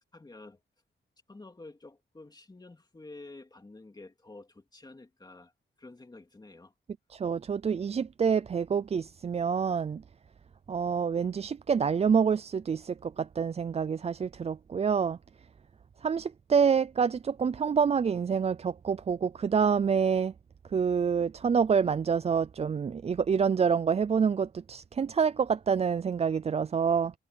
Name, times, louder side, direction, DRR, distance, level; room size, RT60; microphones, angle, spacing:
voice 1, 0.1-0.6 1.3-5.5 5.8-6.7, left 2 dB, 20° left, 2.7 m, -49 dB
voice 2, 7.1-10.0 10.7-15.2 16.0-20.3 20.7-27.1, right 6 dB, 30° right, 0.4 m, -27 dB
wide cardioid pair, 160°, 21 cm